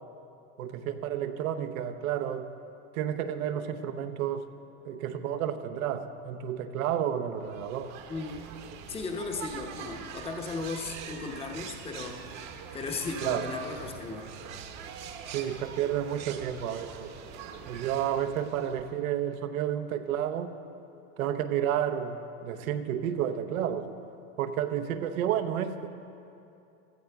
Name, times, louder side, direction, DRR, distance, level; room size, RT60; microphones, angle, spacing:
voice 1, 0.6-2.5 2.9-4.5 4.8-7.9 13.2-13.5 15.3-17.1 17.7-20.5 21.2-23.9 24.4-25.9, right 10 dB, 80° right, 9 dB, 0.9 m, -31 dB
sound 1, 7.4-19.0, right 7 dB, 40° right, 1.1 m, -43 dB
voice 2, 8.1-8.5 8.9-12.4 12.7-14.3, left 4 dB, 15° left, 3 dB, 0.9 m, -36 dB
15.5 x 13.5 x 3.5 m, 2.7 s
supercardioid pair, 115°, 41 cm